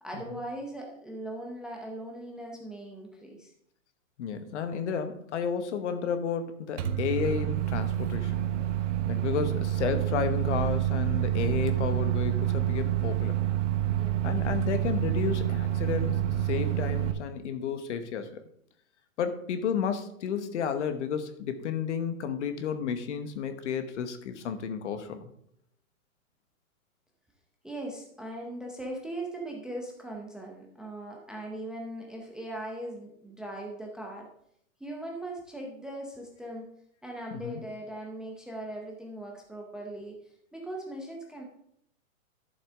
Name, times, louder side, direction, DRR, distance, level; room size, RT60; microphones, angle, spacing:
voice 1, 0.0-3.5 14.0-14.3 27.6-34.3 34.8-36.7 37.0-40.1 40.5-41.4, right 1 dB, ahead, 0 dB, 0.7 m, -39 dB
voice 2, 4.2-8.5 9.1-13.4 14.2-18.4 19.2-25.3 37.3-37.6, left 7 dB, 55° left, 9 dB, 1.2 m, -32 dB
Microwave oven, 6.8-17.1, right 12 dB, 55° right, 1.2 m, -28 dB
11.5 x 7.1 x 3.6 m, 0.71 s
hypercardioid pair, 145°, 42 cm